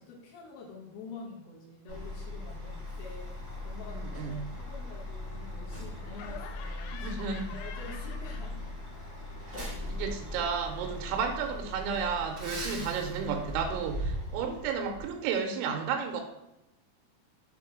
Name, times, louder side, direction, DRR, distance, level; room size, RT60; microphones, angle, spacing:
voice 1, 0.0-7.2 7.5-8.7, left 4 dB, 70° left, -4 dB, 2.5 m, -47 dB
Truck, 1.9-15.0, left 1 dB, 45° right, 0.8 m, -39 dB
voice 2, 3.9-4.5 6.9-7.6 9.6-16.2, right 6 dB, 90° right, 4 dB, 3.0 m, -33 dB
Laughter, 6.1-8.9 9.2-12.1, left 6 dB, 85° left, 2.9 m, -49 dB
7.0 x 3.0 x 4.9 m, 0.94 s
omnidirectional pair, 5.2 m